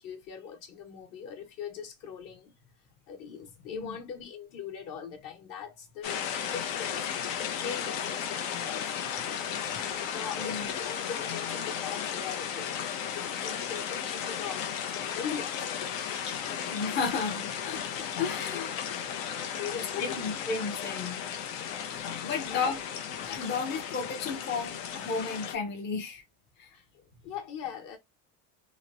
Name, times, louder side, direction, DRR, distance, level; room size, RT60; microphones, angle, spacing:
voice 1, 0.0-2.5 3.1-7.1 7.6-9.3 10.1-14.7 15.1-15.8 18.5-18.6 19.5-20.4 22.3-22.7 26.7-28.0, left 7 dB, 55° left, 1.1 m, -41 dB
sound 1, 6.0-25.6, left 8 dB, 85° left, 0.7 m, -35 dB
voice 2, 10.4-10.7 16.3-17.8 18.2-18.8 19.8-21.2 21.8-22.8 23.2-26.2 26.6-26.7, left 5 dB, 30° left, 0.5 m, -33 dB
2.9 x 2.1 x 2.5 m
supercardioid pair, 115°, 38 cm